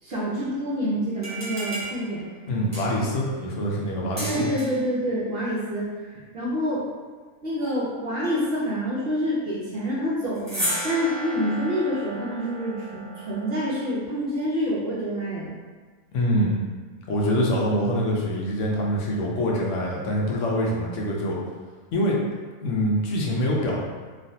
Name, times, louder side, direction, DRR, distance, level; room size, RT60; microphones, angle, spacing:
voice 1, 0.0-2.3 4.2-6.8 7.4-15.5, equal, 60° right, -7 dB, 0.7 m, -27 dB
sound 1, 1.1-3.2 4.2-4.9 10.3-13.9, equal, 15° right, 0.6 m, -34 dB
voice 2, 2.5-4.4 16.1-16.5 17.1-21.4 21.9-22.2 22.6-23.8, equal, 65° left, -3 dB, 0.9 m, -24 dB
3.2 x 2.3 x 2.6 m, 1.4 s
omnidirectional pair, 1.5 m